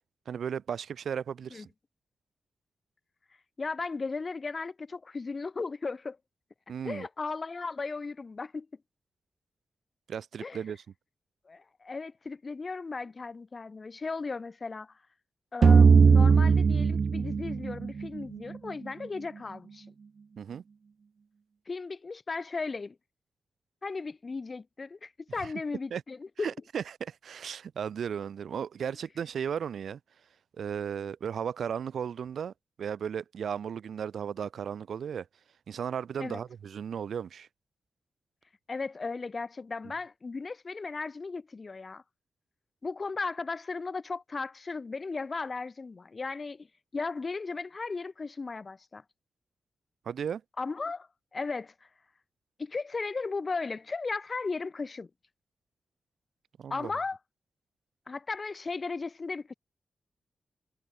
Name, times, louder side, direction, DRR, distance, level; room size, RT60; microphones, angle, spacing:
voice 1, 0.3-1.7 6.7-7.1 10.1-10.8 20.4-20.6 25.4-25.5 25.9-26.0 26.4-30.0 30.6-32.5 32.8-35.3 35.7-37.5 50.1-50.4 56.6-56.9, right 7 dB, 75° right, 5.6 m, -35 dB
voice 2, 3.6-6.2 6.8-8.7 10.4-10.6 11.5-14.9 15.5-19.9 21.7-23.0 23.8-26.5 36.2-36.4 38.7-42.0 42.8-46.7 46.9-49.0 50.6-51.7 52.6-55.1 56.7-57.2 58.1-59.5, left 4 dB, 30° left, 2.4 m, -36 dB
sound 1, 15.6-18.5, right 5 dB, 45° right, 0.4 m, -20 dB
wide cardioid pair, 155°, 0 cm